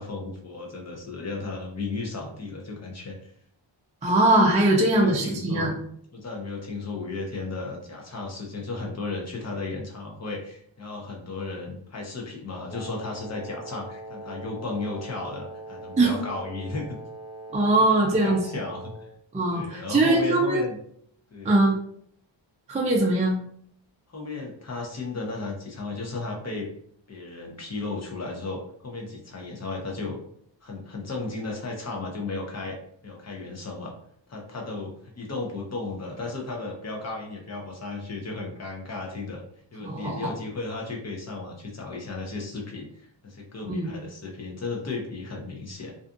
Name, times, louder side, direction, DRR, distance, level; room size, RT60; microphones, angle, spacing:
voice 1, 0.0-3.3 4.7-5.8 6.1-17.0 17.8-19.1 19.5-20.8 21.3-21.6 24.1-26.7 27.1-30.2 30.6-32.8 33.0-33.9 34.3-39.4 39.7-45.9, left 3 dB, 35° left, 0 dB, 0.7 m, -34 dB
voice 2, 4.0-5.8 16.0-16.1 17.5-18.4 19.3-20.6 21.4-21.7 22.7-23.4 39.8-40.3 43.6-43.9, right 2 dB, 15° right, -1 dB, 0.3 m, -21 dB
Wind instrument woodwind instrument, 12.7-19.1, right 1 dB, 50° right, 0.7 m, -41 dB
2.5 x 2.3 x 2.5 m, 0.66 s
wide cardioid pair, 120°, 47 cm